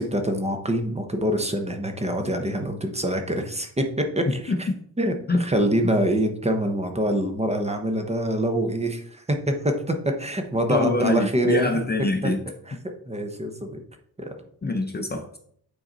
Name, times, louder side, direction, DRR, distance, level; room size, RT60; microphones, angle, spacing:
voice 1, 0.0-4.7 5.0-5.1 5.4-11.7 13.1-13.8 14.2-14.3, right 1 dB, 15° right, 5 dB, 0.8 m, -25 dB
voice 2, 4.3-4.6 5.3-5.4 10.7-12.4 14.6-15.4, left 2 dB, 25° left, 5 dB, 0.6 m, -24 dB
9.0 x 3.9 x 4.0 m, 0.64 s
wide cardioid pair, 150°, 39 cm